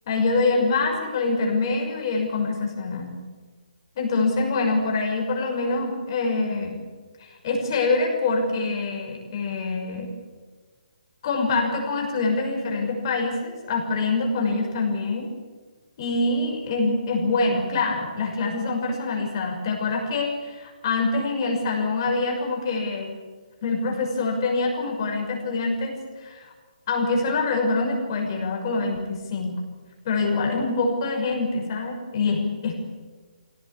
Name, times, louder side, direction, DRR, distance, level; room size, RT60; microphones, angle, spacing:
voice 1, 0.1-3.2 4.0-6.7 7.4-10.1 11.2-15.3 16.0-23.1 23.6-26.5 26.9-29.6 30.0-32.8, left 3 dB, 30° left, 1 dB, 6.1 m, -25 dB
24.0 x 18.0 x 8.6 m, 1.4 s
hypercardioid pair, 170°, 5 cm